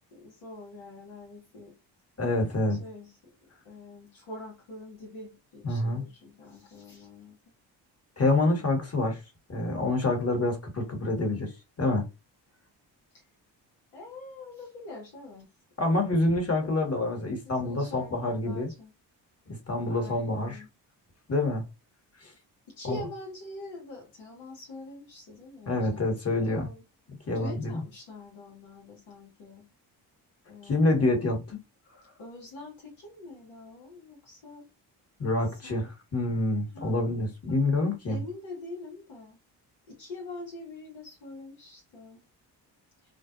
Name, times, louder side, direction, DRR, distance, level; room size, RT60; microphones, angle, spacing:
voice 1, 0.1-1.7 2.7-3.2 3.6-7.4 13.1-13.2 13.9-15.5 16.2-16.8 17.5-18.9 19.9-20.7 22.7-26.8 27.3-29.7 30.5-30.9 32.2-34.6 35.6-35.9 36.7-37.2 37.5-37.6 38.0-39.4 39.9-42.2, left 2 dB, 80° left, 1.1 m, -44 dB
voice 2, 2.2-2.8 5.6-6.0 8.2-9.2 9.5-11.5 11.8-12.1 15.8-18.7 19.5-20.6 21.3-21.6 22.2-22.3 22.8-23.0 25.7-26.7 27.1-27.8 30.6-31.6 35.2-38.2, left 2 dB, 30° left, 1.3 m, -27 dB
2.5 x 2.1 x 2.4 m
supercardioid pair, 50°, 46 cm